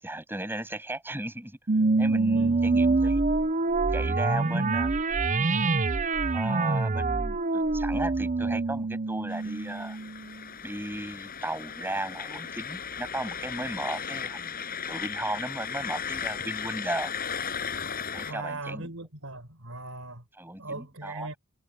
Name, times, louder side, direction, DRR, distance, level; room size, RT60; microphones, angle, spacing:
voice 1, 0.0-1.6 2.0-3.2 3.9-4.9 6.3-10.0 10.6-17.1 18.1-18.9 20.4-21.4, right 1 dB, 10° right, 7.6 m, -35 dB
sound 1, 1.7-10.4, right 3 dB, 35° right, 0.7 m, -26 dB
voice 2, 2.3-2.7 4.3-4.7 18.2-20.2 20.6-21.3, right 2 dB, 70° right, 5.4 m, -39 dB
sound 2, 9.3-18.3, left 7 dB, 45° left, 7.0 m, -36 dB
head